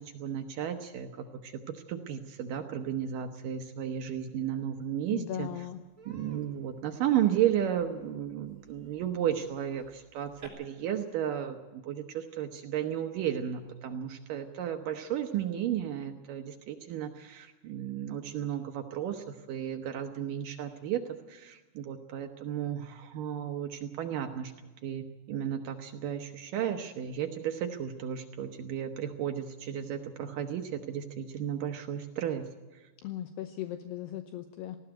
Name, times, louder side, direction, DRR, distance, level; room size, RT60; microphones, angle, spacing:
voice 1, 0.0-5.7 6.1-24.5 24.8-32.8, right 10 dB, 75° right, 5 dB, 1.9 m, -34 dB
Human voice, 5.0-5.1 5.4-5.6 6.0-10.5, right 3 dB, 20° right, 3.5 m, -54 dB
voice 2, 5.1-5.8 33.0-34.8, left 12 dB, 75° left, 8 dB, 2.7 m, -38 dB
19.0 x 15.0 x 9.0 m, 1.2 s
omnidirectional pair, 5.2 m